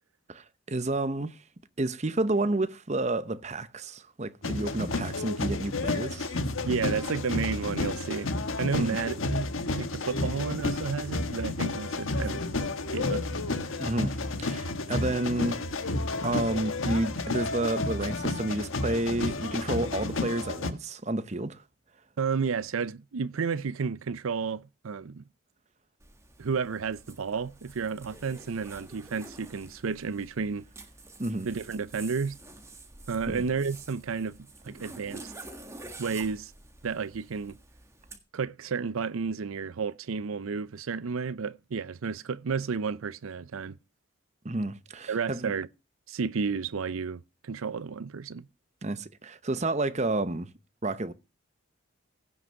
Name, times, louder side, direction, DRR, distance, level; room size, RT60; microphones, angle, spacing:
voice 1, 0.3-1.4 1.8-6.4 8.8-9.0 13.8-15.6 16.2-21.6 31.2-31.5 33.3-33.4 44.4-45.5 48.8-50.5 50.8-51.1, right 2 dB, 35° right, 0.8 m, -30 dB
sound 1, 4.4-20.7, left 2 dB, 80° left, 1.4 m, -31 dB
voice 2, 6.6-8.3 8.6-9.5 9.8-12.5 12.9-13.5 22.2-25.2 26.4-30.7 31.4-32.4 33.1-34.4 34.6-35.3 36.0-36.5 36.8-37.6 38.3-43.8 45.1-45.7 46.1-48.5, right 5 dB, 85° right, 0.5 m, -32 dB
Zipper (clothing), 26.0-38.2, right 2 dB, 15° right, 1.6 m, -48 dB
16.0 x 6.2 x 5.7 m
head